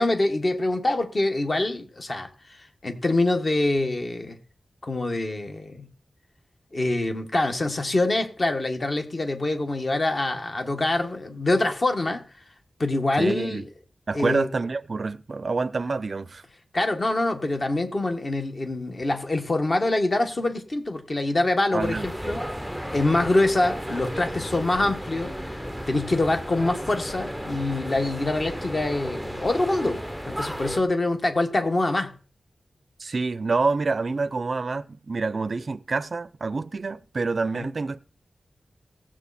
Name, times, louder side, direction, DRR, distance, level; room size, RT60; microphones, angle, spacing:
voice 1, 0.0-4.4 4.8-5.9 6.7-12.2 12.8-13.6 14.1-14.5 16.7-22.4 22.9-25.6 25.9-30.0 30.3-32.1 37.5-37.7, left 2 dB, 40° left, 1.5 m, -25 dB
voice 2, 13.2-13.6 14.1-16.4 21.7-22.1 33.0-38.0, right 3 dB, 50° right, 0.5 m, -27 dB
sound 1, 21.8-30.8, equal, 5° left, 0.7 m, -34 dB
17.5 x 7.6 x 4.2 m
wide cardioid pair, 135°, 0 cm